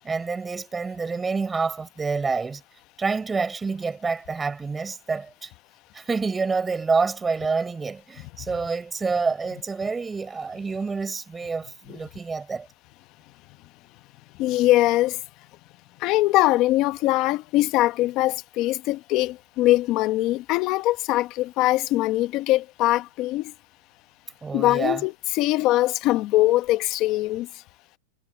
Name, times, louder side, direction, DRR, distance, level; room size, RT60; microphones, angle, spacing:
voice 1, 0.0-2.6 3.0-5.5 5.9-12.7 24.4-25.0, right 4 dB, 10° right, 5.7 m, -27 dB
voice 2, 14.4-15.2 16.0-23.5 24.5-27.5, left 17 dB, 30° left, 0.9 m, -22 dB
supercardioid pair, 165°, 0 cm